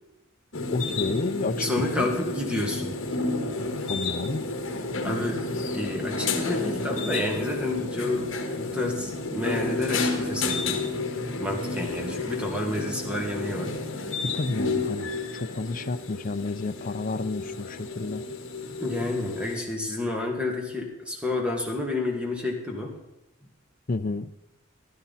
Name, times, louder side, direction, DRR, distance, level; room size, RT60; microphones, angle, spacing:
sound 1, 0.5-19.6, left 3 dB, 65° left, 1.7 m, -31 dB
voice 1, 0.7-2.1 3.9-4.5 14.2-18.2 23.9-24.3, left 3 dB, 40° left, 11 dB, 0.5 m, -31 dB
voice 2, 1.6-3.0 5.0-5.4 5.7-8.3 8.6-10.9 11.4-13.7 18.8-22.9, left 2 dB, 5° right, 1 dB, 2.1 m, -30 dB
14.5 x 11.5 x 4.1 m, 0.97 s
head